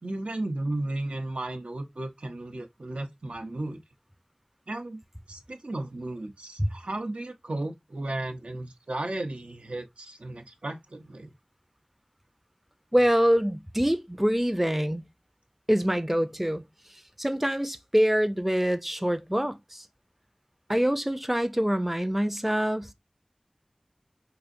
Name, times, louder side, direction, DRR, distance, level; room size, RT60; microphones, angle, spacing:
voice 1, 0.0-3.8 4.7-5.0 5.3-11.3, right 2 dB, 85° right, 0.6 m, -34 dB
voice 2, 12.9-15.0 15.7-16.6 16.9-19.9 20.7-22.9, equal, 10° right, 0.4 m, -25 dB
4.9 x 2.5 x 2.5 m
wide cardioid pair, 45°, 2 cm